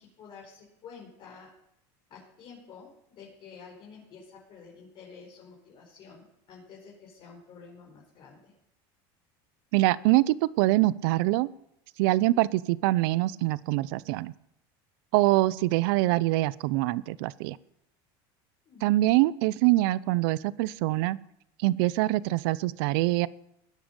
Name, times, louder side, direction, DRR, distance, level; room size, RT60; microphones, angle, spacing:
voice 1, 0.0-1.5 2.1-8.5 18.6-19.1, left 5 dB, 45° left, -4 dB, 4.8 m, -50 dB
voice 2, 9.7-11.5 12.0-14.3 15.1-17.6 18.8-21.2 21.6-23.3, right 18 dB, 75° right, 20 dB, 0.6 m, -24 dB
20.0 x 10.5 x 5.4 m, 0.80 s
supercardioid pair, 135°, 12 cm